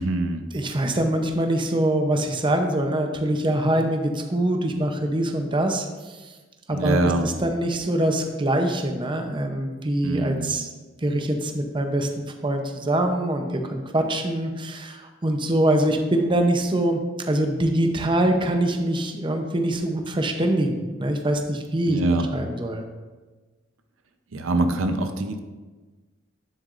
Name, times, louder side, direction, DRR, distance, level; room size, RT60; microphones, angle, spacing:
voice 1, 0.0-0.4 6.7-7.3 10.0-10.6 21.9-22.2 24.3-25.4, right 2 dB, 85° right, 7 dB, 0.7 m, -24 dB
voice 2, 0.5-6.2 6.7-10.7 11.0-17.0 17.3-22.0 22.3-22.8, right 1 dB, 25° right, 4 dB, 0.6 m, -24 dB
9.5 x 7.6 x 2.5 m, 1.3 s
head